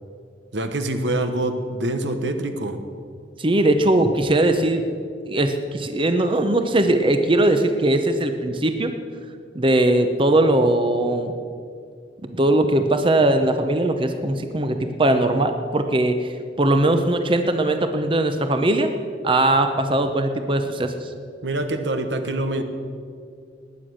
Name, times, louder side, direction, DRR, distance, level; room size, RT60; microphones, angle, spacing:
voice 1, 0.5-2.8 21.4-22.6, right 1 dB, 80° right, 7 dB, 1.3 m, -25 dB
voice 2, 3.4-4.8 5.3-8.9 9.5-11.3 12.3-16.3 16.6-18.9 19.2-21.1, right 1 dB, 30° right, 7 dB, 0.8 m, -20 dB
20.0 x 9.2 x 6.4 m, 2.3 s
head